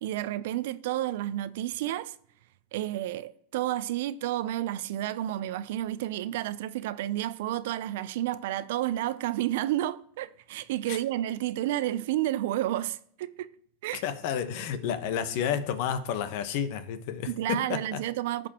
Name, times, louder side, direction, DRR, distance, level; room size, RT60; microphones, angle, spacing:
voice 1, 0.0-2.2 2.7-13.5 13.8-14.0 17.3-18.5, right 13 dB, 70° right, 0.4 m, -31 dB
voice 2, 13.9-18.0, left 8 dB, 60° left, 1.0 m, -31 dB
15.0 x 5.1 x 2.9 m
supercardioid pair, 130°, 0 cm